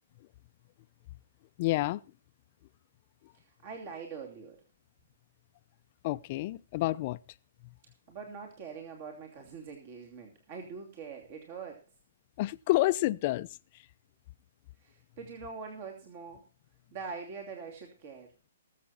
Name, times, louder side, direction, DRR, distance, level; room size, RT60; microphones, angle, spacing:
voice 1, 1.6-2.0 6.0-7.2 12.4-13.5, left 18 dB, 40° left, 0.6 m, -28 dB
voice 2, 3.3-4.6 8.1-11.9 14.8-16.4 16.9-18.3, right 5 dB, 45° right, 2.8 m, -43 dB
20.0 x 7.5 x 4.3 m
hypercardioid pair, 145°, 0 cm